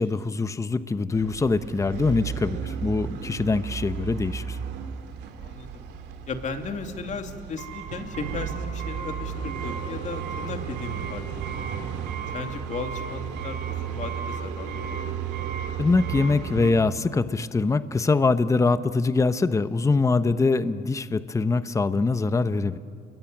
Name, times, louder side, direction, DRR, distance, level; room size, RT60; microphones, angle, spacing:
voice 1, 0.0-4.6 15.8-22.8, left 3 dB, 20° left, 12 dB, 0.9 m, -23 dB
sound 1, 1.1-16.7, right 7 dB, 85° right, 2.5 m, -33 dB
voice 2, 5.4-5.9 6.3-11.8 12.3-15.1, left 5 dB, 45° left, 5 dB, 2.8 m, -36 dB
29.5 x 22.0 x 9.2 m, 2.2 s
cardioid pair, 110°, 17 cm